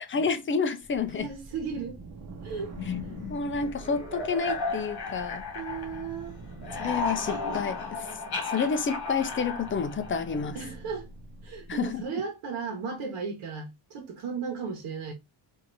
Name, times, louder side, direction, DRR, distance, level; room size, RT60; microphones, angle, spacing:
voice 1, 0.1-1.3 3.3-5.4 6.8-8.1 8.5-10.6 11.7-12.0, left 5 dB, 30° left, 0.3 m, -29 dB
sound 1, 0.8-12.1, right 3 dB, 35° right, 0.8 m, -46 dB
voice 2, 1.1-2.0 2.4-2.7 5.5-6.4 10.5-11.1 11.4-15.1, right 5 dB, 75° right, 1.2 m, -35 dB
sound 2, 2.7-6.2 6.5-10.6, left 4 dB, 45° left, 1.6 m, -35 dB
4.4 x 2.8 x 2.5 m
cardioid pair, 150°, 50 cm